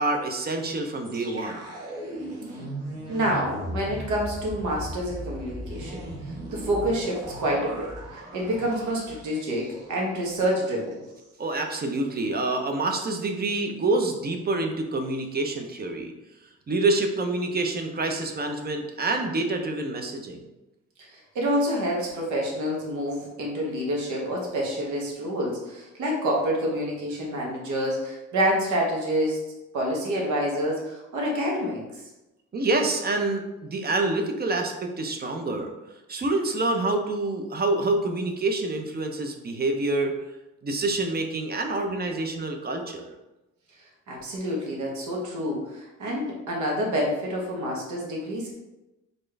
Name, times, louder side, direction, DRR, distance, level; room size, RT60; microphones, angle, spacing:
voice 1, 0.0-1.7 11.4-16.1 16.7-20.5 32.5-35.7 36.1-40.2 40.6-43.1, right 2 dB, 30° right, 4 dB, 0.6 m, -27 dB
sound 1, 1.0-10.1 10.4-10.5 10.9-11.3, right 1 dB, 55° right, 1.2 m, -37 dB
voice 2, 3.1-11.0 21.1-29.4 29.7-32.0 44.1-48.5, equal, 75° right, -2 dB, 1.2 m, -28 dB
4.2 x 2.5 x 3.2 m, 1.0 s
cardioid pair, 90°, 30 cm